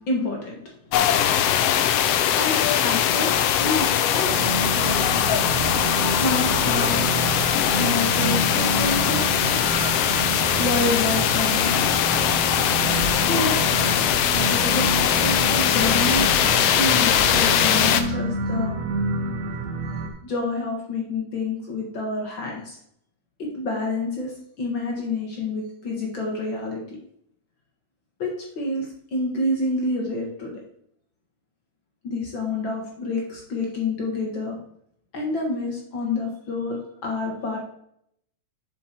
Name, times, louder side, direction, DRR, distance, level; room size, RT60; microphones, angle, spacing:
voice 1, 0.1-0.6 1.5-4.3 6.0-7.2 7.8-9.6 10.6-11.9 13.3-13.6 14.5-18.7 20.2-22.8 23.4-26.8 28.2-30.6 32.0-34.6 35.1-37.6, left 2 dB, 50° left, -1 dB, 1.7 m, -28 dB
sound 1, 0.9-18.0, left 10 dB, 80° left, 1.4 m, -21 dB
sound 2, 4.3-20.1, right 3 dB, 75° right, 2.1 m, -28 dB
7.5 x 5.8 x 4.5 m, 0.71 s
omnidirectional pair, 3.4 m